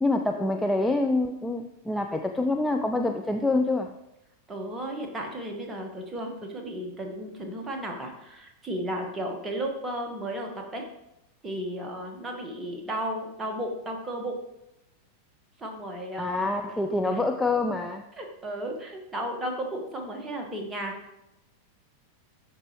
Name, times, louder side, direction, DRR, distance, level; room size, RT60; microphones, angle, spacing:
voice 1, 0.0-3.9 16.2-18.1, left 2 dB, 5° left, 4 dB, 0.4 m, -26 dB
voice 2, 4.5-10.9 11.4-14.4 15.6-16.5 17.1-17.2 18.1-20.9, right 1 dB, 15° right, 2 dB, 1.4 m, -34 dB
12.0 x 4.0 x 3.1 m, 0.86 s
figure-of-eight pair, 90°, 0 cm